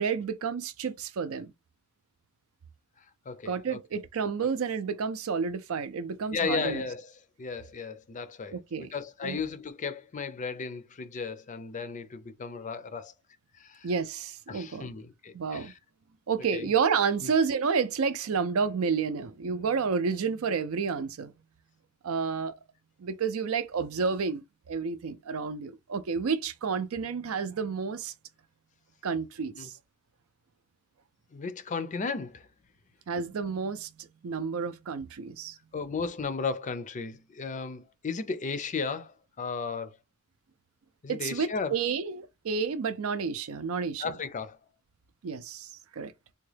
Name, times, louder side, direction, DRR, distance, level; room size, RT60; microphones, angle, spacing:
voice 1, 0.0-1.5 3.5-6.8 8.5-8.9 9.2-9.4 13.8-14.9 15.3-15.7 16.3-21.3 22.0-22.6 23.0-28.1 29.0-29.7 33.1-35.6 41.1-44.1 45.2-45.7 46.0-46.1, right 5 dB, 70° right, 0.5 m, -30 dB
voice 2, 3.3-3.8 6.3-7.1 7.4-13.1 13.6-13.9 14.5-15.7 16.5-16.7 17.2-17.3 29.5-29.7 31.3-32.5 35.7-40.0 41.0-41.8 44.0-44.6, left 5 dB, 35° left, 0.4 m, -35 dB
3.5 x 2.2 x 3.3 m
head